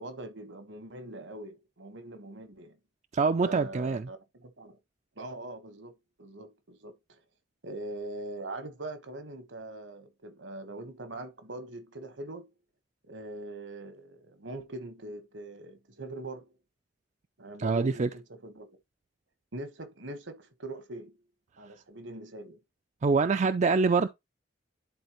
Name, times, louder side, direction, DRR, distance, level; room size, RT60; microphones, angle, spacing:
voice 1, 0.0-2.8 3.4-4.8 5.2-7.0 7.6-12.5 13.0-16.6 17.4-18.7 19.5-21.2 21.6-22.6, right 2 dB, 75° right, 1.3 m, -42 dB
voice 2, 3.1-4.0 17.6-18.1 23.0-24.1, right 4 dB, 40° right, 0.4 m, -25 dB
10.5 x 4.3 x 3.0 m
head